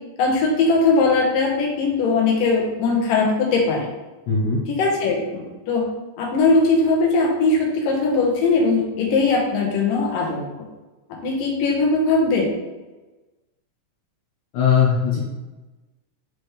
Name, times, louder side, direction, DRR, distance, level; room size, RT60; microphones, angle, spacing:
voice 1, 0.2-3.9 4.7-5.9 6.2-10.4 11.2-12.5, left 3 dB, 90° left, -2 dB, 2.9 m, -20 dB
voice 2, 4.3-4.6 14.5-15.2, left 6 dB, 70° left, -4 dB, 2.3 m, -19 dB
6.1 x 4.6 x 3.3 m, 1.1 s
omnidirectional pair, 3.7 m